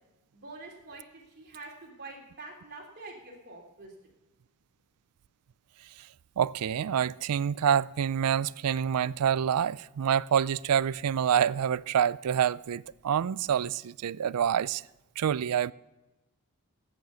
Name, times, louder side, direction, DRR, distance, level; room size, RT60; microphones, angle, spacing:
voice 1, 0.3-3.9, right 3 dB, 50° right, 3.2 m, -46 dB
voice 2, 6.4-14.8 15.2-15.7, right 8 dB, 80° right, 0.4 m, -27 dB
14.5 x 9.1 x 6.8 m
head